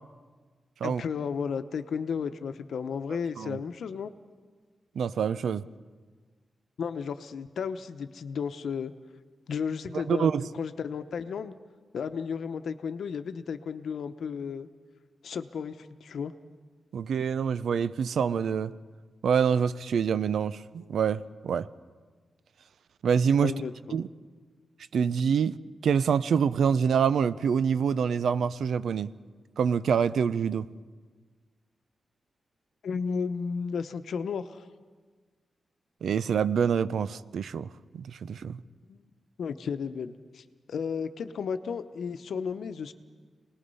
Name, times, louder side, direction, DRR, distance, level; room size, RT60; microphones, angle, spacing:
voice 1, 0.8-4.1 6.8-8.9 9.5-10.3 10.5-11.5 11.9-14.7 15.2-16.3 23.4-24.0 32.8-34.7 38.9-39.1 39.4-42.9, left 6 dB, 75° left, 10 dB, 0.9 m, -33 dB
voice 2, 5.0-5.6 10.1-10.5 16.9-18.7 19.2-21.7 23.0-23.5 23.9-24.1 24.9-25.6 25.8-29.1 29.6-30.7 36.0-37.7 37.9-38.6, right 7 dB, 80° right, 15 dB, 0.6 m, -26 dB
27.5 x 19.5 x 5.5 m, 1.5 s
wide cardioid pair, 175°, 0 cm